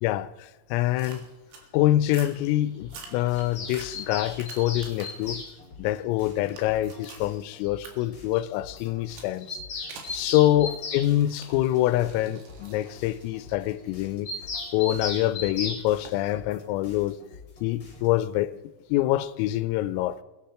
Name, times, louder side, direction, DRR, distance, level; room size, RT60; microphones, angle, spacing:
voice 1, 0.0-1.3 1.7-5.4 5.8-9.6 10.1-14.3 14.7-17.2 17.6-18.5 18.9-20.2, left 14 dB, 90° left, 3.4 m, -25 dB
sound 1, 1.0-1.7 2.1-2.4 2.8-5.3 5.7-7.3 7.8-7.9 9.1-9.3 9.9-10.2 11.1-15.0 16.0-16.2, right 5 dB, 75° right, 4.4 m, -48 dB
sound 2, 2.8-18.3, left 4 dB, 30° left, 4.2 m, -50 dB
Bird vocalization bird call bird song, 3.3-5.5 6.9-7.0 7.3-7.4 7.6-7.7 8.0-8.1 8.3-8.4 8.7-8.8 9.1-11.1 14.3-15.8, left 3 dB, 50° left, 1.7 m, -35 dB
21.5 x 10.0 x 4.4 m
omnidirectional pair, 5.9 m